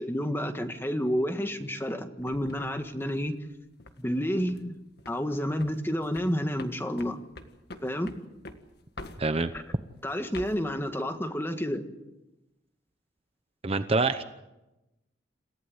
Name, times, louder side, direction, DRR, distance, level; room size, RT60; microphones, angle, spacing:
voice 1, 0.0-3.3 4.0-4.7 5.1-7.2 7.8-8.1 9.5-9.6 10.0-11.8, equal, 10° left, 6 dB, 1.6 m, -30 dB
sound 1, 2.2-4.0 4.4-4.7 5.0-5.3 5.6-9.7 10.1-10.7, left 2 dB, 60° left, 1.7 m, -46 dB
voice 2, 9.2-9.5 13.6-14.2, right 3 dB, 30° right, 10 dB, 0.8 m, -25 dB
27.5 x 15.5 x 8.0 m, 0.99 s
head